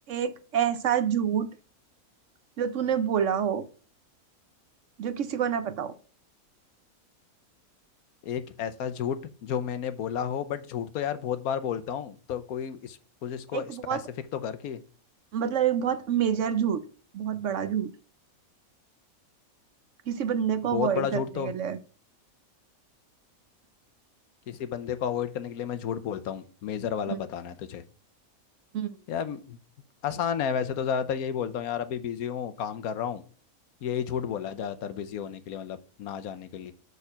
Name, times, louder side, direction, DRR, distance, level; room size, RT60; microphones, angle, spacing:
voice 1, 0.1-1.5 2.6-3.7 5.0-5.9 13.5-14.0 15.3-16.8 17.1-17.9 20.1-21.8 27.1-27.2 28.7-28.9, right 8 dB, 65° right, 0.9 m, -27 dB
voice 2, 8.2-14.0 14.3-14.8 20.6-21.5 24.5-27.8 29.1-29.6 30.0-33.2 33.8-36.7, left 8 dB, 80° left, 1.2 m, -32 dB
6.7 x 4.8 x 5.6 m
omnidirectional pair, 1.6 m